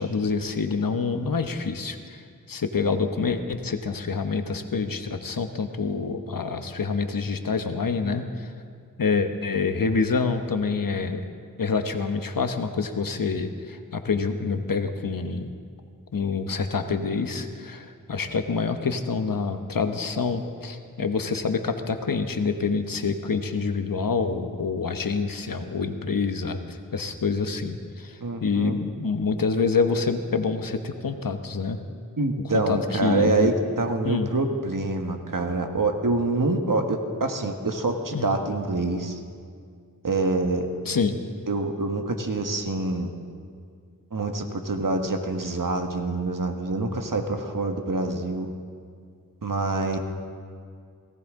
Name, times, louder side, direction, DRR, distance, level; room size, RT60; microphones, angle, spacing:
voice 1, 0.0-2.2 2.5-8.5 9.0-11.2 11.6-15.5 16.1-31.8 32.5-33.5 34.0-34.3 38.1-38.3 40.9-41.2, left 4 dB, 75° left, 7 dB, 1.0 m, -27 dB
voice 2, 28.2-28.8 32.2-39.2 40.0-40.7 41.5-43.1 44.1-48.5 49.4-50.0, right 2 dB, 65° right, 4 dB, 1.5 m, -26 dB
18.0 x 17.5 x 3.7 m, 2.2 s
wide cardioid pair, 50°, 34 cm